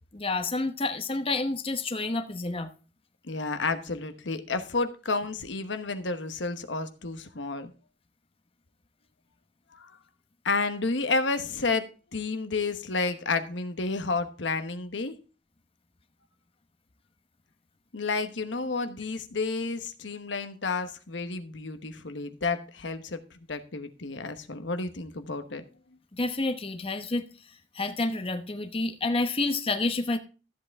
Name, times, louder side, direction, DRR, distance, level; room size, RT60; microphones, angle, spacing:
voice 1, 0.1-2.7 26.2-27.2 27.7-30.2, left 2 dB, 30° left, 0.9 m, -29 dB
voice 2, 3.2-7.7 9.7-10.0 10.4-11.9 12.1-15.2 17.9-25.6, left 3 dB, 80° left, 1.1 m, -31 dB
13.5 x 7.7 x 3.5 m
head